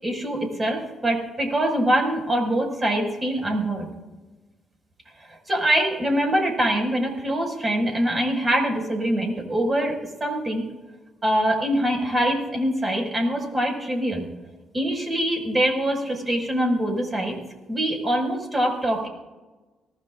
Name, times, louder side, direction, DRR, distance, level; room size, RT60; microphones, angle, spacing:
voice 1, 0.0-3.9 5.5-9.9 10.2-10.7 11.2-14.2 14.7-17.4 17.7-19.1, right 1 dB, 25° right, 0 dB, 5.9 m, -24 dB
25.5 x 18.5 x 2.6 m, 1.2 s
cardioid pair, 90°, 0 cm